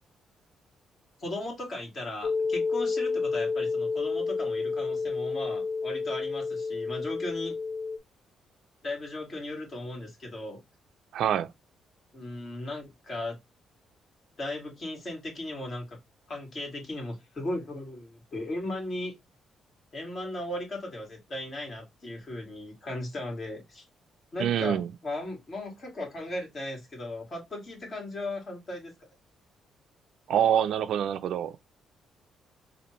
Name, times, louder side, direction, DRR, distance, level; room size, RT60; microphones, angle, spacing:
voice 1, 1.2-7.5 8.8-10.6 12.1-13.4 14.4-16.0 16.3-19.1 19.9-23.8 24.3-28.9, left 1 dB, 45° left, 2.3 m, -37 dB
sound 1, 2.2-8.0, left 4 dB, 60° left, 0.5 m, -30 dB
voice 2, 11.1-11.5 24.4-24.9 30.3-31.5, right 9 dB, 75° right, 0.3 m, -25 dB
4.1 x 2.5 x 3.0 m
cardioid pair, 90°, 0 cm